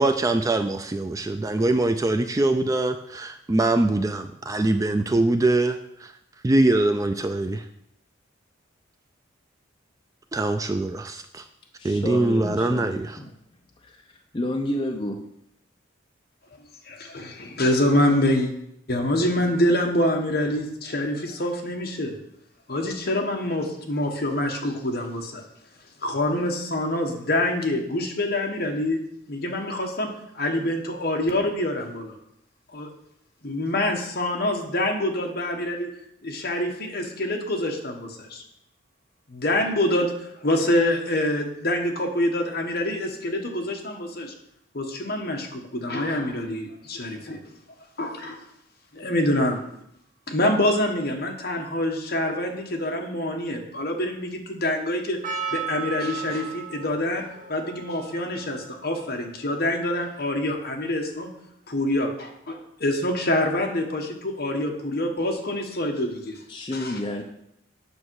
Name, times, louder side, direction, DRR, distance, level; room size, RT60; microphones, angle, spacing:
voice 1, 0.0-6.1 6.4-7.7 10.3-11.5 11.8-13.2, right 2 dB, 15° right, 8 dB, 0.3 m, -23 dB
voice 2, 11.8-13.3 14.3-15.2 66.5-67.2, left 1 dB, 25° left, 1 dB, 0.6 m, -30 dB
voice 3, 16.8-18.5 18.9-22.2 22.7-25.4 26.0-29.0 29.3-32.2 32.7-32.9 33.4-35.9 36.2-38.4 39.3-40.1 40.4-44.3 44.7-47.4 48.0-48.4 48.9-49.6 50.3-55.2 55.5-57.2 57.5-61.3 61.7-66.4 66.7-67.0, left 1 dB, 50° left, 2 dB, 1.3 m, -26 dB
Percussion, 55.2-60.5, right 7 dB, 40° right, 0.9 m, -36 dB
8.5 x 6.3 x 4.7 m, 0.78 s
head